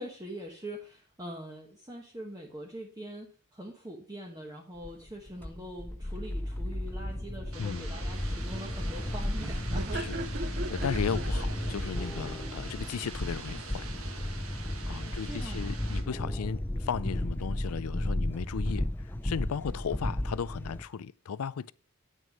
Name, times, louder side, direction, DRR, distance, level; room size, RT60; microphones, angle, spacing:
voice 1, 0.0-10.0 15.0-15.7, equal, 15° right, 1.1 m, -43 dB
sound 1, 4.8-20.8, left 1 dB, 10° left, 0.4 m, -34 dB
sound 2, 7.5-16.0, right 4 dB, 75° right, 1.7 m, -45 dB
voice 2, 7.6-7.9 9.9-10.2 10.5-13.9 14.3-14.5 14.8-21.7, left 6 dB, 80° left, 0.4 m, -36 dB
Laughter, 7.9-14.2, right 2 dB, 50° right, 0.6 m, -42 dB
9.1 x 6.4 x 5.2 m
head